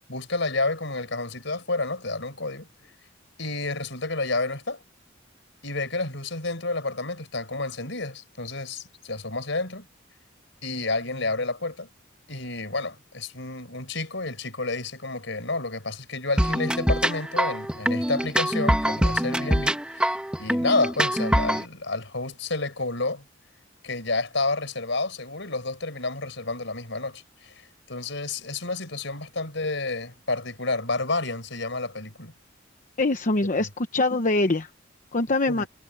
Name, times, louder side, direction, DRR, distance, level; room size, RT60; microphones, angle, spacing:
voice 1, 0.1-2.7 3.4-4.8 5.6-9.9 10.6-11.9 12.3-23.2 23.8-32.3 33.6-33.7 35.5-35.7, left 3 dB, 70° left, 6.3 m, -30 dB
sound 1, 16.4-21.6, equal, 5° right, 1.7 m, -24 dB
voice 2, 33.0-34.7 35.1-35.6, left 2 dB, 45° left, 1.0 m, -23 dB
head